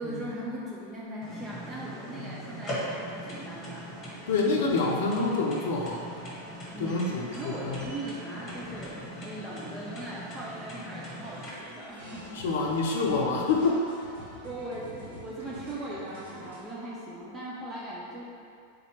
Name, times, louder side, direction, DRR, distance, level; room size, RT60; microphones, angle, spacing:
voice 1, 0.0-3.9 6.7-12.4 14.4-18.2, right 1 dB, 15° right, -6 dB, 0.6 m, -39 dB
sound 1, 1.2-11.5, equal, 25° left, 1.1 m, -40 dB
voice 2, 4.3-6.1 6.8-7.8 12.3-14.0, left 3 dB, 55° left, 0 dB, 0.7 m, -27 dB
sound 2, 6.8-10.9 11.2-16.6, equal, 65° right, 1.4 m, -47 dB
3.9 x 2.9 x 4.7 m, 2.4 s
figure-of-eight pair, 90°, 0 cm